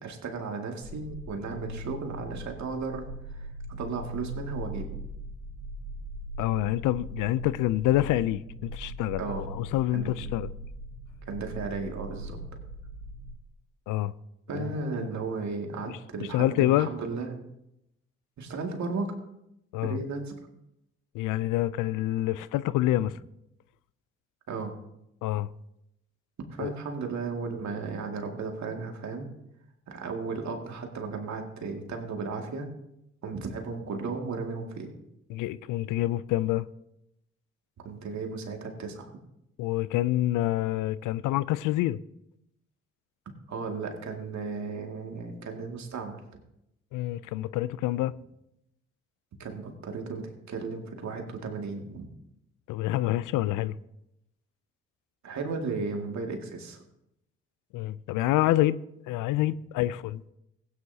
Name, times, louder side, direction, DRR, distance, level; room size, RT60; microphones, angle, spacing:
voice 1, 0.0-3.4 3.8-5.0 9.2-9.5 9.9-10.3 11.3-12.4 14.5-17.4 18.4-19.1 19.8-20.3 24.5-24.7 26.5-29.3 29.9-32.7 33.2-34.9 37.8-39.1 43.5-46.2 49.4-52.1 55.2-56.8, right 4 dB, 60° right, 2.2 m, -35 dB
sound 1, 0.8-13.3, equal, 90° right, 1.5 m, -40 dB
voice 2, 6.4-10.5 13.9-14.1 14.5-14.7 15.0-15.1 15.9-16.9 19.7-20.0 21.1-23.1 25.2-25.5 26.6-26.7 35.3-36.7 39.6-42.0 46.9-48.2 52.7-53.8 57.7-60.2, left 15 dB, 75° left, 0.5 m, -27 dB
16.5 x 9.4 x 2.8 m
hypercardioid pair, 45°, 32 cm